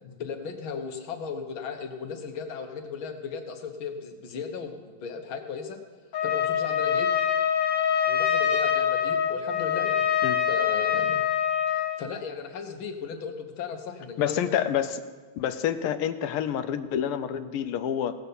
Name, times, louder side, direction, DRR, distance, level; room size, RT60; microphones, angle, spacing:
voice 1, 0.0-5.8 6.2-7.1 8.1-10.1 10.5-11.2 11.7-14.5, left 6 dB, 70° left, 5 dB, 1.9 m, -36 dB
Trumpet, 6.1-12.0, left 8 dB, 50° left, 1.4 m, -25 dB
voice 2, 14.2-15.0 15.4-18.2, left 9 dB, 90° left, 10 dB, 1.6 m, -28 dB
17.0 x 6.7 x 6.9 m, 1.4 s
omnidirectional pair, 2.4 m